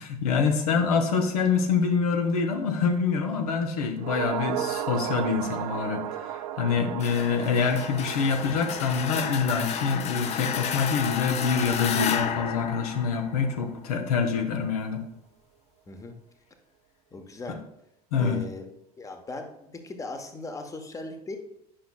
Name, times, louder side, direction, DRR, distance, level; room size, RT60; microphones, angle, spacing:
voice 1, 0.0-15.0 17.5-17.6 18.1-18.4, left 5 dB, 70° left, 4 dB, 0.8 m, -26 dB
sound 1, 4.0-12.5 12.7-12.8, right 11 dB, 60° right, 0.4 m, -36 dB
sound 2, 7.0-13.7, left 8 dB, 35° left, 0.5 m, -32 dB
voice 2, 17.1-17.6 18.1-18.7 19.0-21.4, left 2 dB, 15° left, 5 dB, 0.9 m, -38 dB
10.0 x 5.7 x 2.2 m, 0.76 s
figure-of-eight pair, 70°, 20 cm